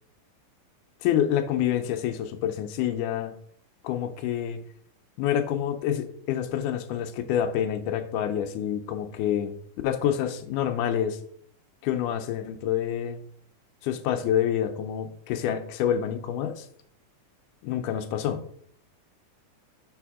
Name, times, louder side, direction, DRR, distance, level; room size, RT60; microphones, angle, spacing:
voice 1, 1.0-3.4 3.8-4.6 5.2-9.6 9.8-11.2 11.8-13.2 13.8-16.7 17.6-18.4, left 10 dB, 85° left, 8 dB, 2.1 m, -27 dB
6.4 x 3.5 x 4.8 m, 0.64 s
omnidirectional pair, 3.7 m